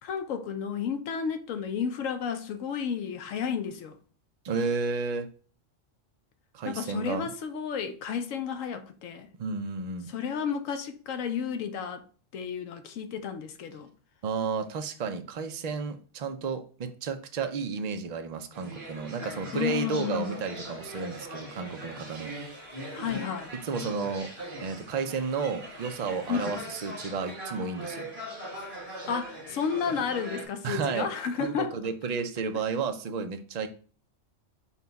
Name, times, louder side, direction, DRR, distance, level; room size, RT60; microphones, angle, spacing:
voice 1, 0.0-4.0 6.6-9.3 10.1-12.0 12.3-13.9 19.5-20.3 22.9-23.5 26.3-26.6 29.1-31.8, left 7 dB, 85° left, 1.0 m, -32 dB
voice 2, 4.4-5.3 6.5-7.3 9.4-10.1 14.2-22.3 23.6-24.3 24.6-28.1 30.6-31.1 31.4-33.7, right 5 dB, 65° right, 0.4 m, -32 dB
sound 1, 18.5-30.5, right 1 dB, 45° right, 1.4 m, -40 dB
5.6 x 2.3 x 3.9 m
omnidirectional pair, 1.3 m